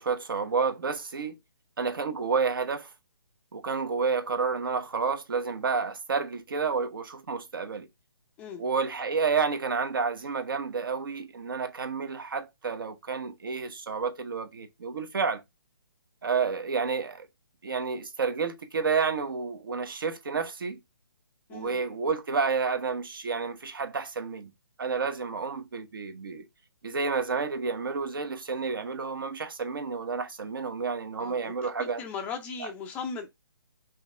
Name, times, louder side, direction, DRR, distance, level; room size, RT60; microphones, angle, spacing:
voice 1, 0.0-1.4 1.8-2.9 3.5-7.9 8.6-15.4 16.2-17.3 17.6-20.8 21.5-24.5 24.8-26.4 26.8-32.0, right 5 dB, 60° right, 1.0 m, -30 dB
voice 2, 21.5-21.8 31.2-33.3, left 5 dB, 10° left, 0.4 m, -38 dB
5.6 x 2.9 x 3.3 m
figure-of-eight pair, 140°, 13 cm